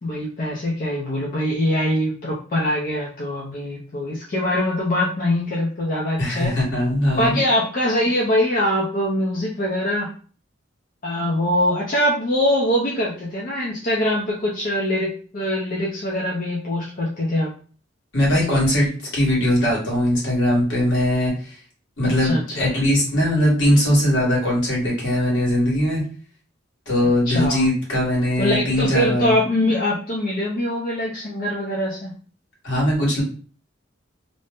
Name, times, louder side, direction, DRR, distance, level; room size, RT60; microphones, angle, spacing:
voice 1, 0.0-6.6 7.2-10.1 11.0-17.5 22.0-22.7 27.3-27.6 28.4-32.1, left 1 dB, 50° left, -4 dB, 0.5 m, -23 dB
voice 2, 6.2-7.4 18.1-21.6 22.0-26.0 26.9-29.3 32.6-33.2, left 1 dB, 80° left, -4 dB, 1.4 m, -20 dB
2.6 x 2.0 x 3.5 m, 0.41 s
head